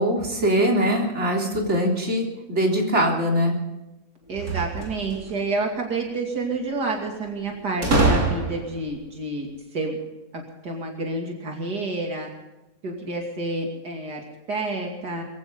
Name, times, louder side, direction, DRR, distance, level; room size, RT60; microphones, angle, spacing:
voice 1, 0.0-3.6, equal, 45° right, 0 dB, 3.8 m, -22 dB
sound 1, 4.3-5.4 7.8-8.9, right 2 dB, 60° right, 3.6 m, -23 dB
voice 2, 4.3-10.0 10.3-12.3 12.8-15.2, right 2 dB, 80° right, 1 dB, 3.1 m, -29 dB
23.5 x 15.5 x 3.8 m, 0.99 s
omnidirectional pair, 1.7 m